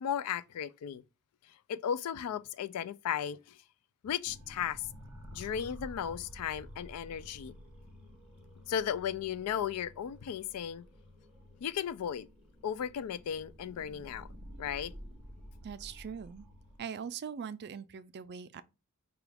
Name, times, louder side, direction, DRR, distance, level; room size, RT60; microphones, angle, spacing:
voice 1, 0.0-1.0 1.7-3.6 4.0-4.8 5.3-7.5 8.7-10.8 11.6-12.3 12.6-14.3 14.6-14.9, left 9 dB, 80° left, 0.3 m, -35 dB
sound 1, 4.2-16.8, equal, 5° right, 0.8 m, -51 dB
voice 2, 15.6-16.5 16.8-18.6, right 7 dB, 50° right, 0.4 m, -41 dB
4.7 x 2.3 x 3.4 m
head